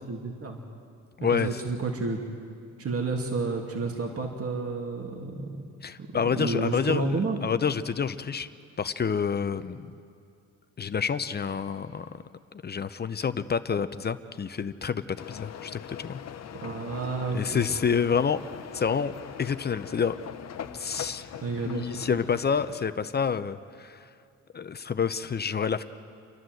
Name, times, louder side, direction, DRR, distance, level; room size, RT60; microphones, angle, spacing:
voice 1, 0.1-0.6 1.2-2.2 2.8-7.4 16.5-17.7 21.4-22.2, right 3 dB, 50° right, 1 dB, 2.5 m, -31 dB
voice 2, 1.2-1.5 5.8-8.5 8.8-10.0 10.8-12.2 12.6-16.2 17.3-18.4 18.7-20.2 20.7-21.3 21.6-24.1 24.5-25.8, left 6 dB, 35° left, 11 dB, 0.7 m, -28 dB
sound 1, 15.2-22.9, left 9 dB, 60° left, 1.0 m, -42 dB
30.0 x 11.0 x 7.8 m, 2.3 s
cardioid pair, 90°, 30 cm